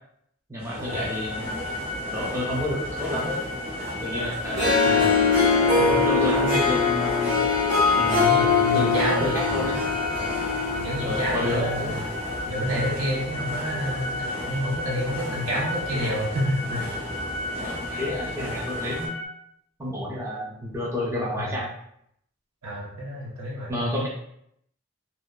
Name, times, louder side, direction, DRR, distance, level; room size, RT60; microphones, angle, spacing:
voice 1, 0.5-1.5 2.1-3.4 4.0-5.1 5.7-7.3 7.9-9.8 11.0-12.0 17.6-19.1 19.8-21.7 23.7-24.1, left 1 dB, 15° right, -4 dB, 0.4 m, -30 dB
sound 1, 0.6-19.1, equal, 30° right, 0.9 m, -36 dB
sound 2, 0.9-19.3, left 2 dB, 60° left, 0.3 m, -35 dB
Harp, 4.4-11.9, left 4 dB, 55° right, 1.3 m, -22 dB
voice 2, 4.8-5.3 8.2-9.8 10.1-10.4 10.8-12.0 12.5-17.0 21.4-21.5 22.6-23.8, equal, 85° right, -4 dB, 0.8 m, -29 dB
2.6 x 2.1 x 2.2 m, 0.73 s
head